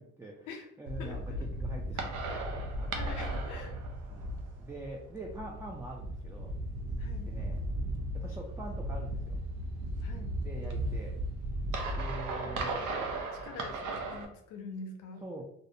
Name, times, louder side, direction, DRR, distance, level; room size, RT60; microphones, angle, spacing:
voice 1, 0.0-0.5 0.8-3.3 4.1-4.3 4.6-6.5 7.3-7.6 8.1-9.4 10.4-11.2 11.9-12.9 15.2-15.4, right 1 dB, 10° right, -1 dB, 0.3 m, -44 dB
sound 1, 0.9-14.3, right 1 dB, 85° right, 0.5 m, -36 dB
voice 2, 1.0-1.5 1.9-2.5 2.9-3.8 7.0-7.3 10.0-10.4 12.8-15.2, left 4 dB, 90° left, 5 dB, 0.5 m, -46 dB
2.4 x 2.0 x 2.6 m, 0.72 s
cardioid pair, 90°, 30 cm